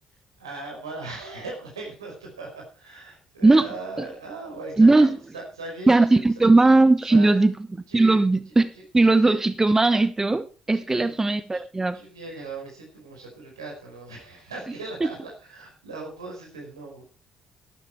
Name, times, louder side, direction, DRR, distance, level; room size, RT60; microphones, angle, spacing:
voice 1, 0.4-6.2 7.1-7.4 7.9-8.2 8.7-9.4 10.7-11.2 11.5-11.6 11.9-17.0, right 3 dB, 85° right, 4.7 m, -39 dB
voice 2, 4.8-5.2 5.9-7.5 7.9-8.7 8.9-12.0, right 2 dB, 20° right, 1.1 m, -18 dB
13.0 x 12.0 x 4.5 m
figure-of-eight pair, 45°, 2 cm